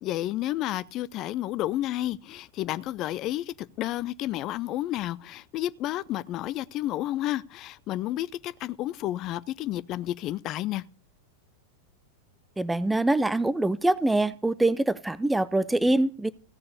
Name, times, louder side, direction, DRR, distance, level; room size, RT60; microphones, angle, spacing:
voice 1, 0.0-10.8, left 14 dB, 35° left, 0.6 m, -31 dB
voice 2, 12.6-16.3, right 2 dB, 5° right, 0.7 m, -24 dB
16.5 x 6.8 x 6.6 m
figure-of-eight pair, 90°, 0 cm